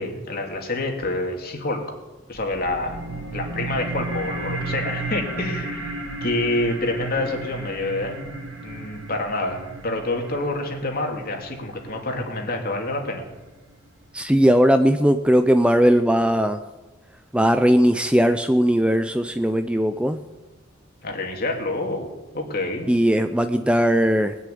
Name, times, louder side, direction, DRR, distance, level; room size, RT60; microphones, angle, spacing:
voice 1, 0.0-1.9 2.3-3.0 3.3-8.3 8.6-13.2 21.0-22.1 22.3-22.9, left 2 dB, 50° left, 2 dB, 2.7 m, -27 dB
sound 1, 2.3-13.3, right 3 dB, 85° right, 2.3 m, -34 dB
voice 2, 14.1-16.6 17.3-20.2 22.9-24.4, equal, 5° right, 8 dB, 0.5 m, -18 dB
20.0 x 7.1 x 9.4 m, 1.1 s
head